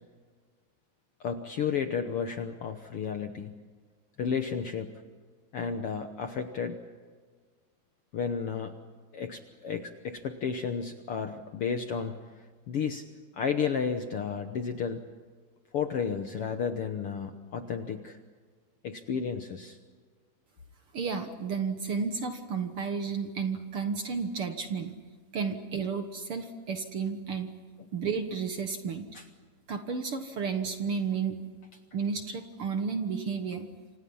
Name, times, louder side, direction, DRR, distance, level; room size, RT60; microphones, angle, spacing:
voice 1, 1.2-3.6 4.2-5.0 5.5-6.8 8.1-8.7 9.1-12.2 12.7-13.1 13.3-15.0 15.7-18.2 18.8-19.8 29.1-29.2, left 6 dB, 60° left, 7 dB, 1.5 m, -32 dB
voice 2, 20.9-24.9 25.3-27.5 27.9-29.1 29.7-31.4 31.9-33.7, right 5 dB, 55° right, 7 dB, 1.9 m, -32 dB
28.5 x 26.5 x 5.6 m, 1.5 s
omnidirectional pair, 3.8 m